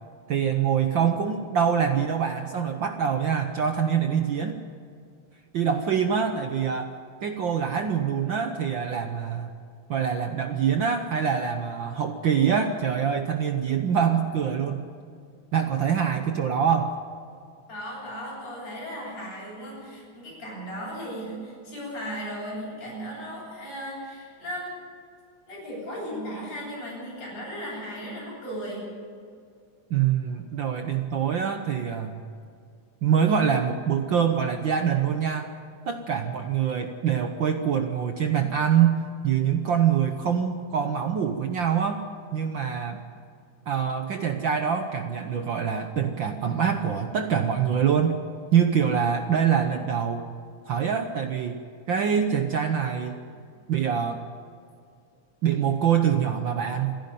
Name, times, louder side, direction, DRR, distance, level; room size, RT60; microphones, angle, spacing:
voice 1, 0.3-4.6 5.5-6.9 7.2-9.5 9.9-14.8 15.5-17.0 29.9-32.2 33.0-35.5 35.9-42.0 42.3-43.0 43.7-48.2 48.5-50.3 50.7-53.2 53.7-54.2 55.4-57.0, right 7 dB, 85° right, 6 dB, 1.0 m, -25 dB
voice 2, 17.7-24.7 25.5-28.9, equal, 60° left, -7 dB, 8.9 m, -36 dB
27.0 x 11.0 x 9.1 m, 2.3 s
omnidirectional pair, 3.5 m